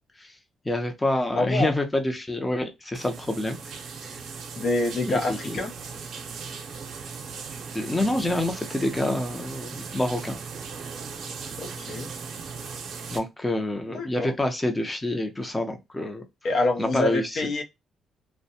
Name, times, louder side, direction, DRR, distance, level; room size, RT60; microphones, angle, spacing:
voice 1, 0.7-3.6 4.0-4.2 5.1-5.6 7.7-10.4 13.1-16.2 16.8-17.4, left 1 dB, 15° left, 0.5 m, -27 dB
voice 2, 1.3-1.7 4.6-5.7 11.6-12.1 13.9-14.3 16.4-17.6, left 2 dB, 65° left, 0.6 m, -26 dB
sound 1, 2.9-13.2, right 5 dB, 60° right, 0.6 m, -38 dB
2.6 x 2.1 x 2.7 m
cardioid pair, 90°, 0 cm